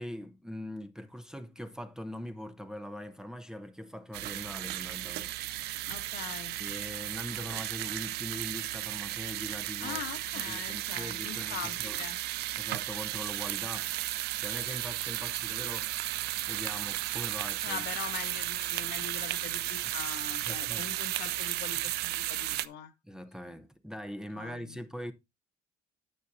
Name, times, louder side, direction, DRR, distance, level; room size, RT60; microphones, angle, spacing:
voice 1, 0.0-5.4 5.7-5.9 6.6-10.0 10.3-12.0 12.6-16.0 16.5-17.8 19.8-20.0 20.4-20.9 23.0-25.1, equal, 5° right, 0.8 m, -42 dB
sound 1, 4.1-22.7, right 16 dB, 75° right, 0.4 m, -34 dB
voice 2, 5.8-6.6 9.8-12.2 17.6-22.9 24.3-24.8, left 9 dB, 75° left, 1.4 m, -42 dB
9.2 x 8.1 x 2.7 m
cardioid pair, 110°, 17 cm